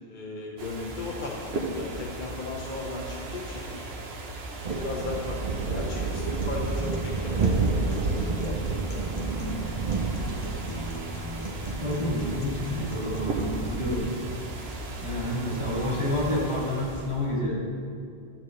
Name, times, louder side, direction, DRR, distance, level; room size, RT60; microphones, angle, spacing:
voice 1, 0.1-3.6 4.7-9.1, left 3 dB, 50° left, -3 dB, 1.0 m, -36 dB
sound 1, 0.6-17.4, right 2 dB, 70° right, 1.1 m, -37 dB
sound 2, 4.6-17.1, right 4 dB, 50° right, 0.5 m, -32 dB
Acoustic guitar, 5.9-13.9, equal, 35° left, 0.9 m, -39 dB
voice 2, 11.6-14.1 14.7-14.8 15.0-17.7, left 1 dB, 70° left, -4 dB, 2.4 m, -29 dB
11.5 x 8.2 x 3.2 m, 2.5 s
omnidirectional pair, 1.1 m